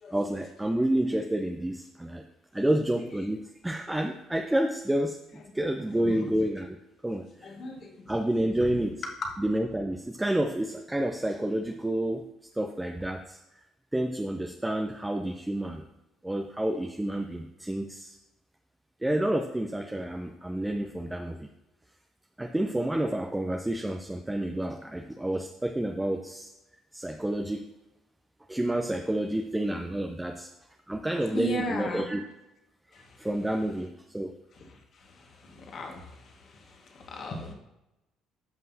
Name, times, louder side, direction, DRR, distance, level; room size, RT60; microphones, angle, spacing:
voice 1, 0.1-2.2 2.5-5.2 5.5-6.8 7.0-7.2 8.1-9.0 9.4-12.2 12.6-13.4 13.9-15.8 16.2-18.2 19.0-21.5 22.4-26.5 26.9-27.7 28.5-30.5 30.9-32.2 33.2-34.3, right 1 dB, 10° right, 4 dB, 0.7 m, -29 dB
voice 2, 5.9-6.3 7.4-8.1 8.7-8.8 9.2-9.3 31.3-32.1 32.9-33.2 34.6-37.5, equal, 50° left, 2 dB, 1.8 m, -37 dB
13.0 x 5.5 x 2.8 m, 0.94 s
hypercardioid pair, 55°, 0 cm